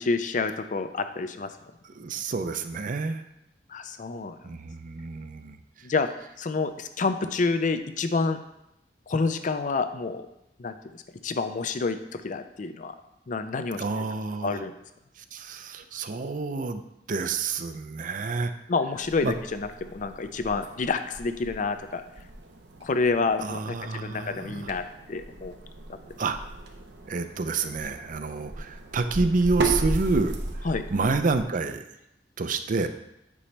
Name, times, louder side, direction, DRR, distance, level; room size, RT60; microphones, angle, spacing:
voice 1, 0.0-1.5 3.7-4.4 5.8-6.1 6.4-8.4 9.1-10.3 10.6-13.0 13.3-13.8 14.4-14.7 18.7-22.0 22.8-25.5 25.9-26.0 30.6-30.8, left 4 dB, 45° left, 9 dB, 0.5 m, -28 dB
voice 2, 1.8-3.2 4.4-5.9 13.8-14.6 15.2-18.5 19.2-19.4 23.4-24.8 26.2-26.4 27.1-31.8 32.4-32.9, right 3 dB, 50° right, 9 dB, 0.5 m, -29 dB
sound 1, 18.9-31.4, right 3 dB, 75° right, 0.8 m, -35 dB
8.5 x 5.2 x 3.3 m, 0.84 s
head